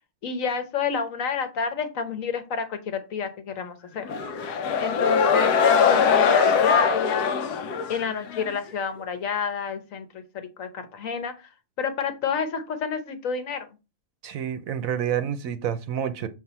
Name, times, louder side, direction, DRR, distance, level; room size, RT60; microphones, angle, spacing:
voice 1, 0.2-4.1 4.8-7.3 7.9-11.5 11.8-13.7, left 6 dB, 60° left, 1.3 m, -29 dB
sound 1, 4.1-8.6, left 6 dB, 85° left, 1.3 m, -21 dB
voice 2, 14.2-16.3, right 9 dB, 65° right, 1.0 m, -28 dB
6.8 x 4.0 x 4.2 m
omnidirectional pair, 1.7 m